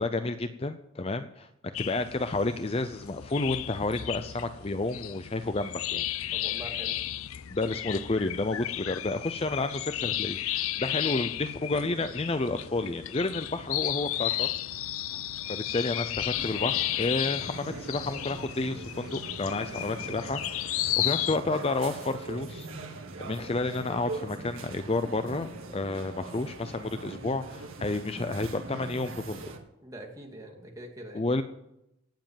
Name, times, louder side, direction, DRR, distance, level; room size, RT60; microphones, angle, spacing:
voice 1, 0.0-1.5 1.8-6.5 7.5-14.5 15.5-22.9 23.2-29.4 31.1-31.4, left 2 dB, 25° left, 10 dB, 0.5 m, -31 dB
sound 1, 1.7-21.4, left 13 dB, 75° left, 0.5 m, -33 dB
voice 2, 6.3-7.0 11.2-11.4 21.0-21.3 29.8-31.3, right 1 dB, 15° right, 0 dB, 2.5 m, -44 dB
sound 2, 9.9-17.0, left 1 dB, 50° right, 3.6 m, -57 dB
sound 3, 16.3-29.6, right 3 dB, 70° right, 2.0 m, -41 dB
18.0 x 7.6 x 7.5 m, 0.84 s
head